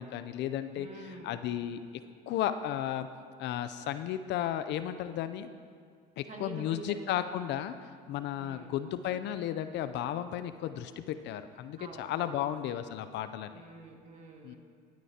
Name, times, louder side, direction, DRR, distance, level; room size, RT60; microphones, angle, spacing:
voice 1, 0.0-2.0 2.3-3.1 3.4-5.5 6.2-7.7 8.1-13.6 14.4-14.5, left 11 dB, 55° left, 11 dB, 0.5 m, -34 dB
voice 2, 0.7-1.4 6.3-6.9 8.4-8.7 11.8-12.5 13.5-14.6, right 3 dB, 35° right, 1 dB, 1.9 m, -47 dB
16.0 x 9.1 x 2.8 m, 2.2 s
supercardioid pair, 95°, 21 cm